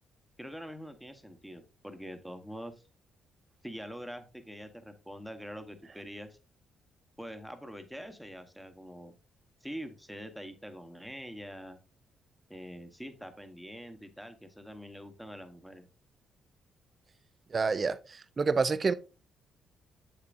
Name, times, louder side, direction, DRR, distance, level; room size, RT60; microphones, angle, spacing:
voice 1, 0.4-2.8 3.6-6.4 7.2-9.1 9.6-11.8 12.5-15.9, equal, ahead, 1.1 m, -44 dB
voice 2, 17.5-18.9, right 4 dB, 35° right, 0.5 m, -28 dB
7.3 x 6.7 x 2.5 m
cardioid pair, 90°, 0 cm